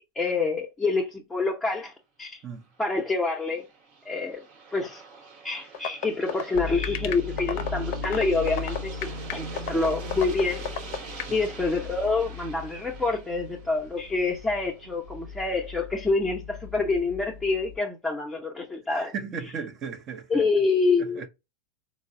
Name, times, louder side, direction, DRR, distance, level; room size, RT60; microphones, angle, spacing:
voice 1, 0.2-1.9 2.2-2.4 2.8-3.6 4.1-4.4 4.7-5.0 5.4-10.7 11.3-19.1 20.3-21.3, left 3 dB, 10° left, 0.6 m, -27 dB
Aircraft, 2.7-15.5, right 5 dB, 50° right, 1.1 m, -45 dB
sound 1, 5.7-11.3, left 8 dB, 60° left, 0.5 m, -30 dB
sound 2, 6.5-17.8, left 4 dB, 75° right, 0.6 m, -38 dB
voice 2, 18.9-20.4 21.0-21.3, right 5 dB, 35° right, 0.6 m, -36 dB
3.7 x 2.0 x 2.6 m
hypercardioid pair, 115°, 0 cm